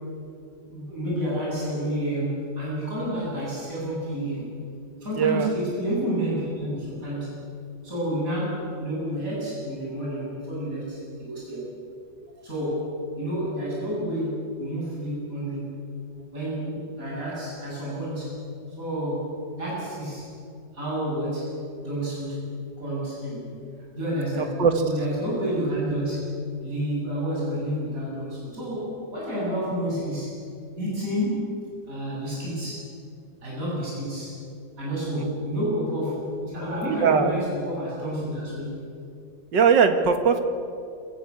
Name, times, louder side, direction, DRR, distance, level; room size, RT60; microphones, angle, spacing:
voice 1, 0.7-4.5 5.0-7.4 7.8-11.7 12.4-15.8 16.3-18.3 18.8-19.3 19.6-20.3 20.7-21.6 21.8-22.4 22.8-23.5 23.9-26.3 26.6-30.4 30.8-31.5 31.9-32.9 33.4-34.4 34.8-38.8, equal, 45° right, -6 dB, 8.3 m, -29 dB
voice 2, 5.2-5.5 24.4-24.7 35.2-35.5 37.0-37.3 39.5-40.4, right 6 dB, 75° right, 7 dB, 2.2 m, -20 dB
25.5 x 16.0 x 8.5 m, 2.6 s
omnidirectional pair, 2.0 m